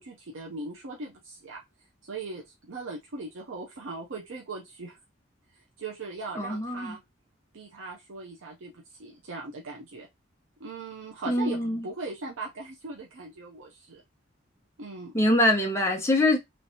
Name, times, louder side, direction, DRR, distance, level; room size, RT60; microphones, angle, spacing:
voice 1, 0.0-1.6 2.0-5.0 5.5-7.0 7.5-10.1 10.6-14.0 14.8-15.1, right 3 dB, 85° right, 0.6 m, -39 dB
voice 2, 6.4-6.9 11.3-11.8 15.1-16.4, left 1 dB, 15° left, 0.8 m, -24 dB
3.1 x 3.1 x 2.7 m
head